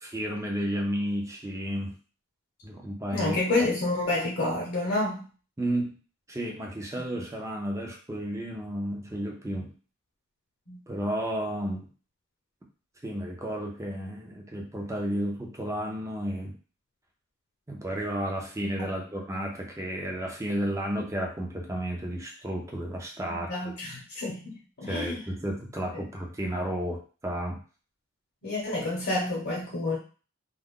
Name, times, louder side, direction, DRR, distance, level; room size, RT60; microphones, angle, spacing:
voice 1, 0.0-1.9 2.6-3.4 5.6-6.0 6.3-9.7 10.9-11.9 13.0-16.6 17.7-23.7 24.9-27.6, equal, 15° right, 0 dB, 0.6 m, -32 dB
voice 2, 3.1-5.2 10.7-10.8 18.8-18.9 23.3-25.2 25.9-26.0 28.4-30.0, left 2 dB, 55° left, -4 dB, 0.9 m, -29 dB
2.4 x 2.2 x 3.6 m, 0.37 s
head